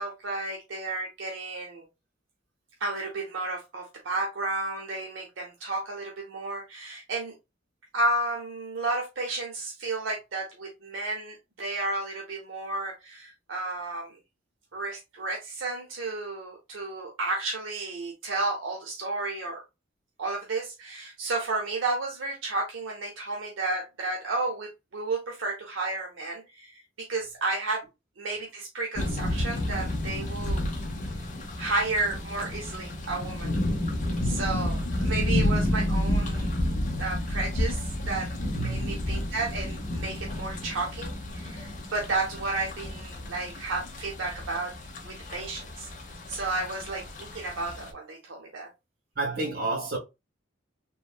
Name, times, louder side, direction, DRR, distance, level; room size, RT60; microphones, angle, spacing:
voice 1, 0.0-1.9 2.8-7.3 7.9-14.2 14.7-19.6 20.2-27.8 28.2-30.6 31.6-33.5 34.2-36.6 37.0-38.3 38.6-44.7 45.1-45.9 46.3-48.7, right 2 dB, 80° right, 0.6 m, -32 dB
sound 1, 29.0-47.9, left 1 dB, 40° left, 0.7 m, -31 dB
voice 2, 38.5-39.1 46.3-46.5 49.1-50.0, right 3 dB, 50° right, 1.6 m, -31 dB
3.0 x 2.5 x 2.3 m
head